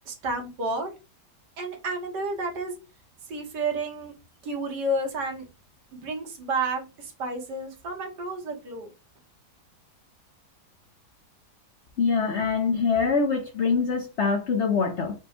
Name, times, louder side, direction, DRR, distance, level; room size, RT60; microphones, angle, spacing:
voice 1, 0.1-0.9 1.6-2.7 3.3-4.1 4.4-5.4 5.9-8.9, right 2 dB, 90° right, 3 dB, 1.8 m, -31 dB
voice 2, 12.0-15.1, left 5 dB, 60° left, 4 dB, 0.8 m, -24 dB
5.1 x 2.2 x 4.2 m, 0.30 s
omnidirectional pair, 1.8 m